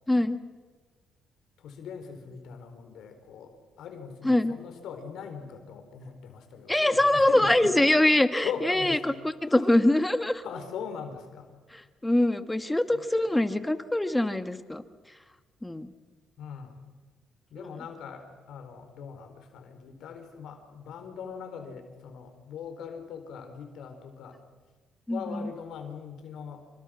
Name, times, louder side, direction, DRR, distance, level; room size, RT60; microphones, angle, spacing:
voice 1, 0.1-0.4 4.2-4.5 6.7-9.1 9.4-10.4 12.0-14.8 15.6-15.9 17.6-17.7 25.1-25.5, left 1 dB, 10° left, 10 dB, 1.6 m, -23 dB
voice 2, 1.6-3.5 3.8-7.9 8.4-9.2 9.4-9.7 10.4-11.6 12.9-13.4 16.4-16.8 17.5-24.4 25.1-26.6, left 6 dB, 80° left, 6 dB, 4.2 m, -40 dB
27.0 x 25.0 x 6.4 m, 1.3 s
cardioid pair, 90°, 0 cm